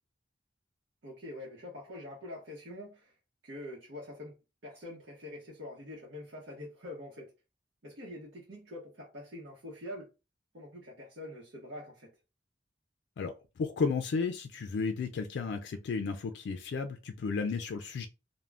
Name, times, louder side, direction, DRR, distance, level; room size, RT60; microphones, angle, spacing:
voice 1, 1.0-3.1 3.4-4.3 4.6-7.3 7.8-10.1 10.5-12.1, left 1 dB, 80° right, 0.9 m, -45 dB
voice 2, 13.2-18.1, left 4 dB, 70° left, 0.3 m, -33 dB
2.4 x 2.1 x 3.3 m
head